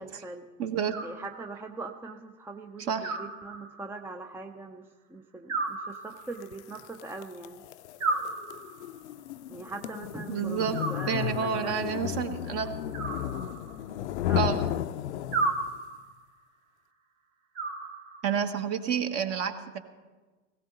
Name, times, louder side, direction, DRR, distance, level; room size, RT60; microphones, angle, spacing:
voice 1, 0.0-0.5 1.0-4.8 5.1-7.6 9.5-12.1 14.3-14.8, right 3 dB, 5° right, 6 dB, 0.5 m, -41 dB
voice 2, 0.6-1.0 2.9-3.2 10.3-10.8 11.1-12.7 14.4-14.7 18.2-19.8, right 7 dB, 40° right, 7 dB, 1.4 m, -29 dB
Animal, 0.9-1.8 3.0-4.0 5.5-6.6 8.0-9.0 10.7-11.6 12.9-14.0 15.3-16.2 17.5-18.5, right 3 dB, 65° right, 2.0 m, -34 dB
sound 1, 6.4-15.8, left 11 dB, 65° left, 0.6 m, -34 dB
17.5 x 16.5 x 4.1 m, 1.3 s
figure-of-eight pair, 85°, 37 cm